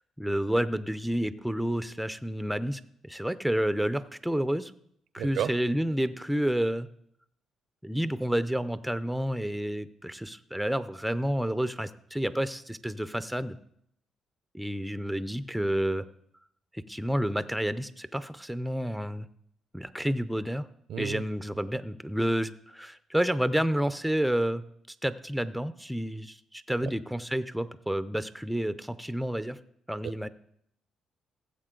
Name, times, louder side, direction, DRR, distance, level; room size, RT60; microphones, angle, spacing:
voice 1, 0.2-4.7 5.1-6.9 7.8-13.6 14.5-16.0 16.7-19.3 19.7-20.7 21.0-24.6 25.0-29.6 29.9-30.3, equal, ahead, 13 dB, 0.5 m, -30 dB
voice 2, 5.2-5.5 20.9-21.2 30.0-30.1, right 9 dB, 75° right, 15 dB, 0.5 m, -32 dB
16.0 x 7.3 x 3.8 m, 0.70 s
cardioid pair, 90°, 0 cm